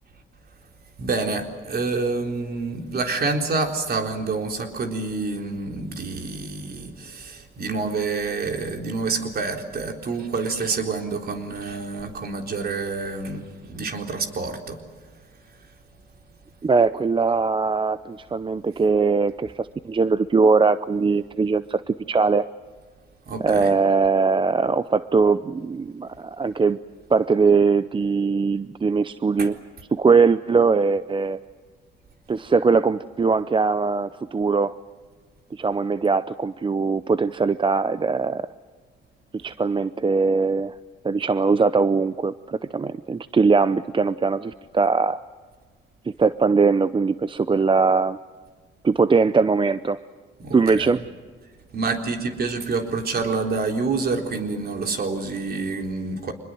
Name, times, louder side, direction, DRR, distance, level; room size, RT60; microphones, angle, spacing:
voice 1, 1.0-14.8 23.3-23.7 29.4-29.5 50.4-50.9 51.7-56.3, right 4 dB, 50° right, 4 dB, 3.9 m, -27 dB
voice 2, 16.6-22.5 23.4-26.8 27.1-29.6 29.9-31.4 32.3-34.7 35.5-38.5 39.3-40.7 41.0-45.2 46.0-48.2 48.8-50.0 50.5-51.0, right 4 dB, 25° right, 14 dB, 0.6 m, -21 dB
25.5 x 21.5 x 7.8 m, 1.5 s
cardioid pair, 90°, 20 cm